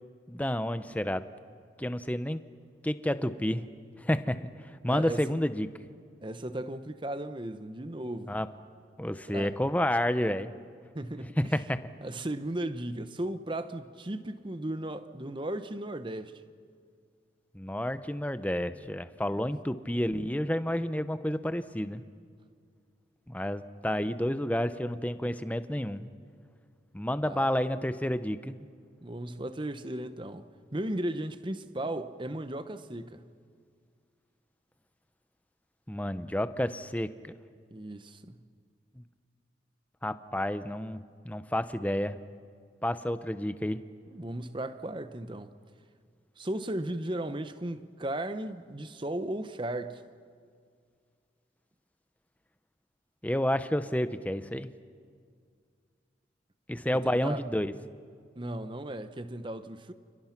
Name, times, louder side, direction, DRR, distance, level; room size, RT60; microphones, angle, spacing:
voice 1, 0.3-1.2 1.8-2.4 2.8-3.7 4.0-4.5 4.8-5.7 8.3-8.5 9.0-10.5 11.4-11.8 17.5-22.0 23.3-26.1 26.9-28.7 35.9-37.3 39.0-39.1 40.0-42.2 42.8-43.8 53.2-54.7 56.7-57.7, left 1 dB, 10° left, 0.7 m, -30 dB
voice 2, 4.9-5.2 6.2-8.4 9.3-9.6 10.9-11.4 12.0-16.4 19.3-19.4 27.2-27.4 29.0-33.3 37.7-38.3 44.1-45.5 46.4-50.0 57.2-57.4 58.4-59.9, right 1 dB, 25° right, 0.9 m, -36 dB
29.5 x 29.0 x 5.9 m
head